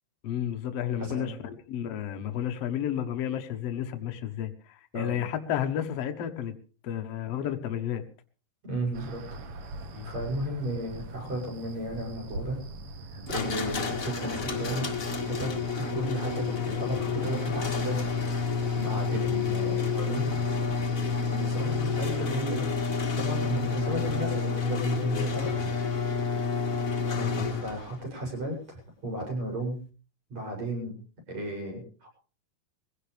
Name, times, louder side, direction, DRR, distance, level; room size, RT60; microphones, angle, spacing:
voice 1, 0.2-6.5 6.8-8.0 9.9-10.1 27.1-27.5, left 10 dB, 65° left, 6 dB, 1.6 m, -32 dB
voice 2, 1.0-1.4 4.9-5.2 8.6-9.2 10.0-12.6 13.0-14.9 15.3-18.0 18.4-20.4 21.3-22.7 23.2-25.5 27.5-29.8 30.3-32.1, right 1 dB, 40° right, -1 dB, 8.6 m, -34 dB
sound 1, 8.9-22.2, right 3 dB, 70° right, 1.3 m, -43 dB
sound 2, 13.3-27.9, left 5 dB, 35° left, 1.3 m, -29 dB
22.5 x 16.5 x 3.4 m, 0.38 s
omnidirectional pair, 4.6 m